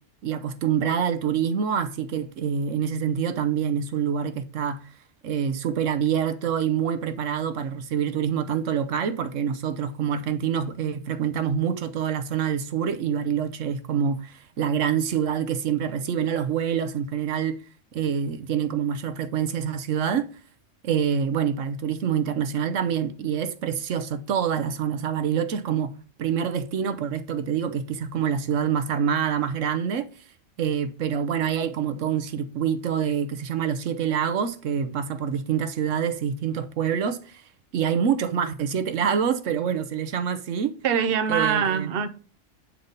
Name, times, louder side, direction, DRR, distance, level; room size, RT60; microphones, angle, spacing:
voice 1, 0.2-4.8 5.2-17.6 17.9-20.3 20.8-25.9 26.2-30.1 30.6-37.4 37.7-40.8 41.3-41.9, right 8 dB, 80° right, 1.1 m, -26 dB
voice 2, 40.8-42.1, right 7 dB, 55° right, 0.9 m, -23 dB
9.5 x 4.0 x 5.2 m
omnidirectional pair, 1.3 m